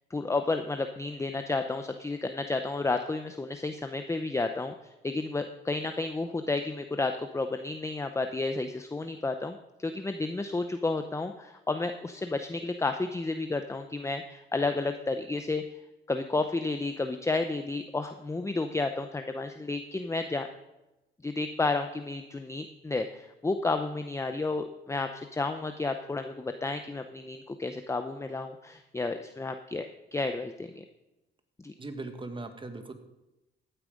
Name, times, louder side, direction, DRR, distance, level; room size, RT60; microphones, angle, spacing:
voice 1, 0.1-15.6 16.1-20.5 21.2-30.8 31.6-31.7, left 3 dB, 15° left, 7 dB, 0.7 m, -31 dB
voice 2, 31.8-32.9, right 2 dB, 25° right, 7 dB, 1.7 m, -39 dB
14.5 x 9.1 x 5.1 m, 0.97 s
cardioid pair, 90°, 20 cm